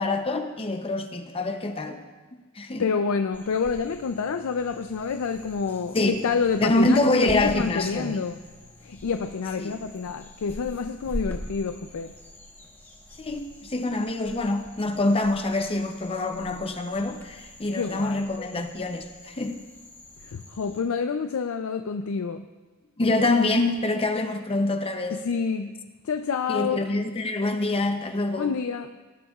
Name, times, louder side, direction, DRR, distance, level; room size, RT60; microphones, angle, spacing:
voice 1, 0.0-2.0 2.5-2.8 5.9-6.3 6.6-8.2 9.6-9.8 13.2-19.6 23.0-25.2 26.5-28.5, left 2 dB, 25° left, 6 dB, 0.6 m, -25 dB
voice 2, 2.8-8.4 8.8-12.1 17.7-18.2 20.2-22.5 25.1-25.7 26.0-26.8 28.4-28.9, left 5 dB, 70° left, 7 dB, 0.4 m, -28 dB
sound 1, 3.3-20.8, equal, 10° left, 1.0 m, -43 dB
18.5 x 9.9 x 2.4 m, 1.3 s
head